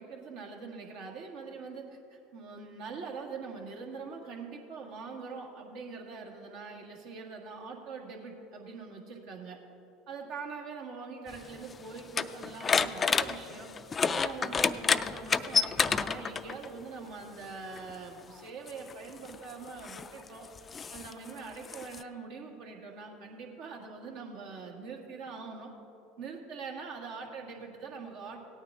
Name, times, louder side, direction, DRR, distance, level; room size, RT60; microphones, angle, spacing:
voice 1, 0.0-9.6 10.1-13.7 14.1-20.5 20.9-25.7 26.2-28.4, right 4 dB, 65° right, 1 dB, 1.8 m, -43 dB
sound 1, 11.3-16.7 17.8-17.9 18.7-22.0, left 5 dB, 30° left, 0.4 m, -30 dB
17.0 x 9.3 x 3.6 m, 2.9 s
hypercardioid pair, 80°, 0 cm